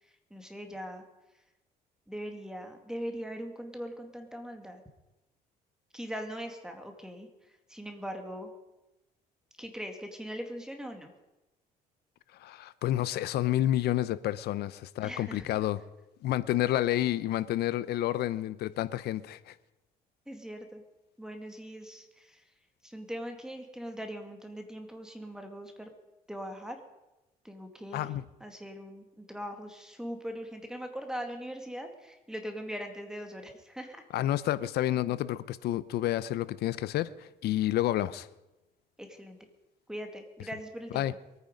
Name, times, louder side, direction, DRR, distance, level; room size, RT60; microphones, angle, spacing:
voice 1, 0.3-1.0 2.1-4.8 5.9-7.3 7.7-8.5 9.6-11.1 15.0-15.5 20.3-20.8 21.2-22.4 22.8-25.9 26.3-26.8 27.4-28.1 28.4-34.0 39.0-39.4 39.9-41.2, equal, 5° right, 2.1 m, -40 dB
voice 2, 12.4-15.8 16.2-19.5 27.9-28.2 34.1-38.3 40.9-41.1, left 13 dB, 70° left, 0.8 m, -29 dB
23.0 x 9.5 x 5.2 m
cardioid pair, 110°, 17 cm